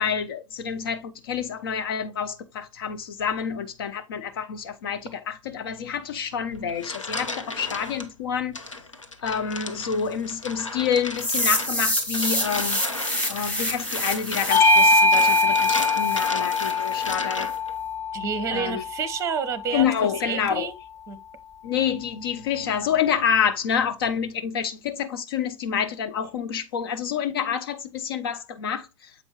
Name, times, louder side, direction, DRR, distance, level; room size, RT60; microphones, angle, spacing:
voice 1, 0.0-8.6 9.2-17.5 18.5-18.8 19.7-20.7 21.6-29.1, left 7 dB, 50° left, 0.7 m, -28 dB
sound 1, 6.5-8.1 8.6-17.7, left 3 dB, 80° left, 1.1 m, -34 dB
sound 2, 11.2-17.1, equal, 10° left, 3.0 m, -28 dB
Bell / Doorbell, 14.5-19.3, left 2 dB, 25° left, 1.8 m, -22 dB
voice 2, 18.1-20.7 21.1-21.2, right 6 dB, 20° right, 0.9 m, -29 dB
7.8 x 5.2 x 3.0 m
figure-of-eight pair, 105°, 16 cm